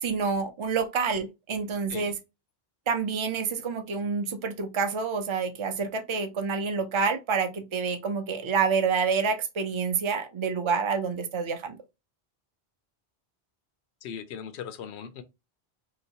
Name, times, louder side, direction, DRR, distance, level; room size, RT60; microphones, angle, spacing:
voice 1, 0.0-2.2 2.9-11.8, right 5 dB, 35° right, 0.5 m, -28 dB
voice 2, 14.0-15.2, left 8 dB, 85° left, 0.9 m, -39 dB
3.0 x 3.0 x 2.7 m
omnidirectional pair, 1.1 m